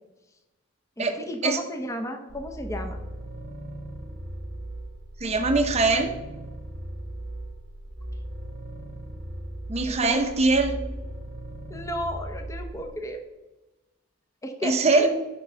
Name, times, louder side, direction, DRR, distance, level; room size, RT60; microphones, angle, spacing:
voice 1, 1.0-3.0 9.9-10.2 11.7-13.2 14.4-15.1, left 1 dB, 15° left, 4 dB, 0.9 m, -33 dB
sound 1, 2.3-12.9, right 1 dB, 60° right, 1.2 m, -38 dB
voice 2, 5.2-6.1 9.7-10.8 14.6-15.1, right 3 dB, 30° right, 5 dB, 0.8 m, -22 dB
10.0 x 3.8 x 5.6 m, 1.1 s
head